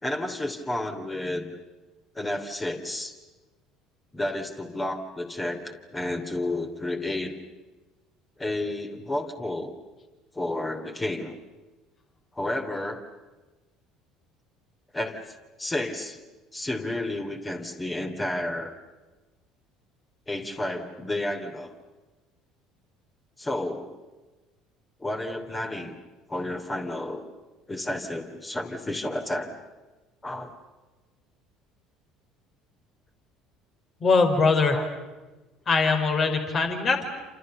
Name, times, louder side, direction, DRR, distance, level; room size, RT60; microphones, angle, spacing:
voice 1, 0.0-1.6 2.1-3.1 4.1-7.3 8.4-9.7 10.3-11.4 12.3-13.0 14.9-15.2 15.6-16.2 16.5-18.7 20.3-21.7 23.4-23.9 25.0-26.0 26.3-27.2 27.7-29.5 30.2-30.5 34.7-34.9, left 1 dB, 20° left, 5 dB, 3.2 m, -31 dB
voice 2, 34.0-34.8 35.7-37.0, left 4 dB, 40° left, 5 dB, 4.9 m, -22 dB
29.0 x 28.0 x 6.8 m, 1.2 s
figure-of-eight pair, 60°, 0 cm